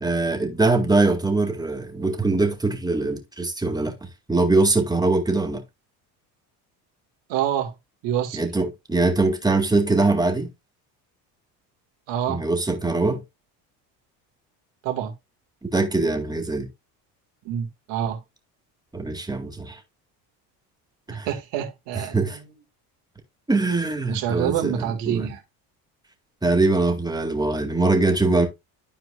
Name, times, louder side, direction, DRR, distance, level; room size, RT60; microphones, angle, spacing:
voice 1, 0.0-5.6 8.3-10.5 12.3-13.2 15.7-16.7 18.9-19.8 21.1-21.3 22.1-22.4 23.5-25.3 26.4-28.5, right 3 dB, 10° right, 2.0 m, -22 dB
voice 2, 7.3-7.7 8.0-8.4 12.1-12.4 14.8-15.1 17.5-18.2 21.1-22.4 24.1-25.4, right 10 dB, 65° right, 1.8 m, -27 dB
13.0 x 4.6 x 2.3 m
hypercardioid pair, 75°, 46 cm